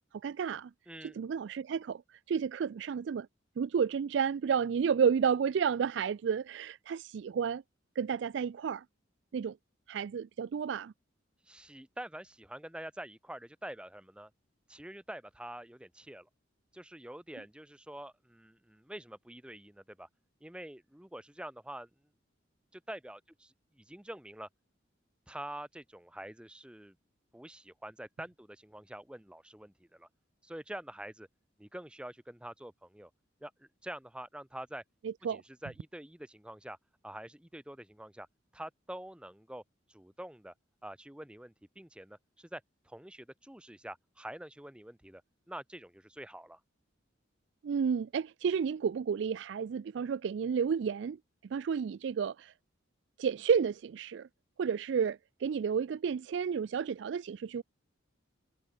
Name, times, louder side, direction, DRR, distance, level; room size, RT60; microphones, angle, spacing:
voice 1, 0.2-0.7 1.0-3.3 3.6-7.6 8.0-8.8 9.3-9.6 9.9-10.9 35.0-35.4 47.6-51.2 51.5-52.5 53.2-54.3 54.6-57.6, right 6 dB, 65° right, 0.3 m, -31 dB
voice 2, 0.9-1.2 11.4-14.3 14.7-16.3 16.7-20.1 20.4-21.9 22.7-24.5 25.3-27.0 27.3-30.1 30.4-31.3 31.6-33.1 33.4-34.8 35.3-36.8 37.0-38.3 38.5-39.6 39.9-40.5 40.8-45.2 45.5-46.6, right 1 dB, 5° right, 0.8 m, -46 dB
head